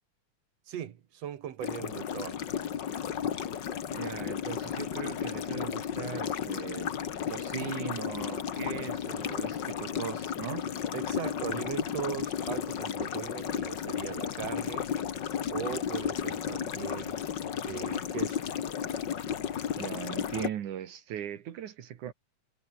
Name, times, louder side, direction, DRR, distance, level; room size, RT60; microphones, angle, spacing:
voice 1, 0.7-2.4 10.9-14.9 15.5-17.2 17.6-18.4, right 10 dB, 60° right, 2.4 m, -39 dB
sound 1, 1.6-20.5, left 8 dB, 50° left, 1.5 m, -33 dB
voice 2, 3.9-6.9 7.3-10.7 19.8-22.1, right 10 dB, 75° right, 3.0 m, -39 dB
omnidirectional pair, 3.6 m